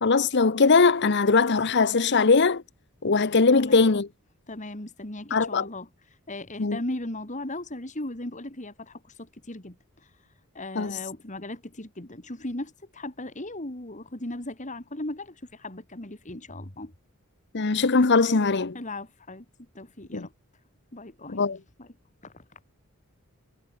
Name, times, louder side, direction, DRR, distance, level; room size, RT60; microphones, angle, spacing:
voice 1, 0.0-2.6 3.0-4.1 5.3-5.6 6.6-6.8 10.7-11.0 17.5-18.8 20.1-20.3 21.3-21.6, left 4 dB, 50° left, 0.9 m, -21 dB
voice 2, 3.5-4.0 4.5-5.9 6.3-9.8 10.5-16.9 18.7-19.5 19.7-20.3 20.9-21.4 21.8-21.9 22.2-22.6, left 1 dB, 35° left, 2.7 m, -37 dB
head